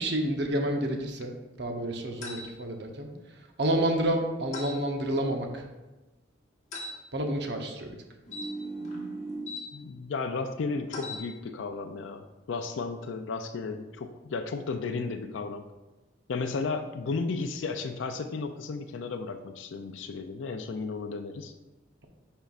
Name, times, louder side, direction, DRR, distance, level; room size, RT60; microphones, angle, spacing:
voice 1, 0.0-3.1 3.6-5.6 7.1-7.9, right 1 dB, 60° right, 3 dB, 0.9 m, -29 dB
sound 1, 2.2-2.5 4.5-4.8 6.7-6.9 8.3-9.6 10.9-11.2, equal, 40° left, 1.4 m, -37 dB
voice 2, 9.7-15.7 16.3-21.5, left 4 dB, 75° left, 6 dB, 0.4 m, -34 dB
10.5 x 4.4 x 2.5 m, 1.1 s
head